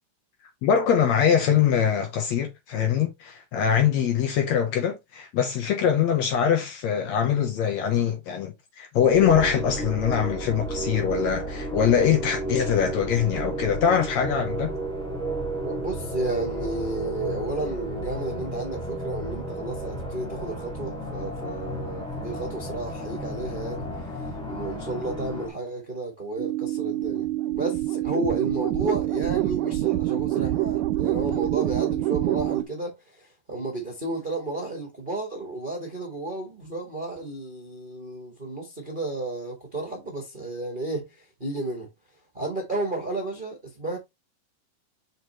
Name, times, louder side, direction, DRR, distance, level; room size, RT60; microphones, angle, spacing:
voice 1, 0.6-14.7, left 8 dB, 65° left, 2.0 m, -23 dB
sound 1, 9.1-25.5, right 1 dB, ahead, 1.3 m, -32 dB
voice 2, 15.6-41.9 42.3-44.0, right 2 dB, 25° right, 1.2 m, -32 dB
sound 2, 26.4-32.6, right 15 dB, 80° right, 2.0 m, -26 dB
6.3 x 5.1 x 3.0 m
omnidirectional pair, 3.8 m